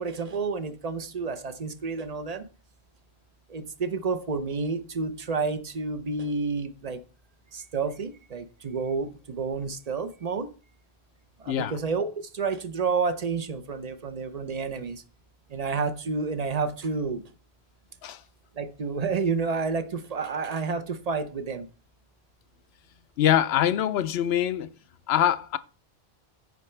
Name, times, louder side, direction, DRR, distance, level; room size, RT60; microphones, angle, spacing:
voice 1, 0.0-2.4 3.5-7.0 7.5-10.5 11.4-12.1 12.3-15.0 15.5-17.2 18.6-21.7, right 4 dB, 40° right, 0.7 m, -30 dB
voice 2, 23.2-24.7 25.1-25.6, left 11 dB, 75° left, 0.8 m, -23 dB
14.5 x 5.6 x 3.2 m
omnidirectional pair, 1.1 m